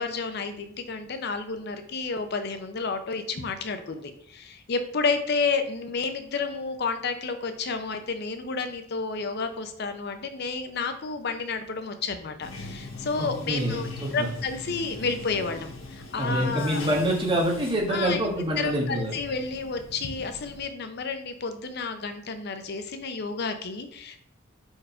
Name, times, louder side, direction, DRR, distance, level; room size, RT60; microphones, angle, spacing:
voice 1, 0.0-16.8 17.9-18.2 18.6-24.2, left 4 dB, 55° left, 7 dB, 0.6 m, -31 dB
Bathtub (filling or washing), 12.4-20.6, left 2 dB, 80° left, 1.3 m, -41 dB
voice 2, 13.2-14.1 16.2-19.1, right 1 dB, 25° right, 0 dB, 1.4 m, -26 dB
5.0 x 4.6 x 4.4 m, 0.68 s
head